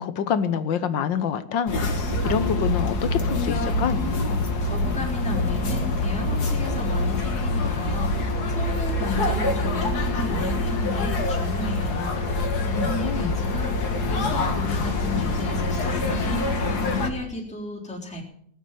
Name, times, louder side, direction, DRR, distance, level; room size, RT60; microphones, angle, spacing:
voice 1, 0.0-1.8 2.2-4.0 12.8-13.3, left 7 dB, 85° left, 13 dB, 1.8 m, -26 dB
sound 1, 1.7-17.1, left 2 dB, 60° left, 2.3 m, -25 dB
voice 2, 4.7-12.1 12.6-16.5 16.8-18.2, left 2 dB, 5° left, -6 dB, 3.9 m, -33 dB
19.5 x 8.0 x 9.1 m, 0.67 s
omnidirectional pair, 2.0 m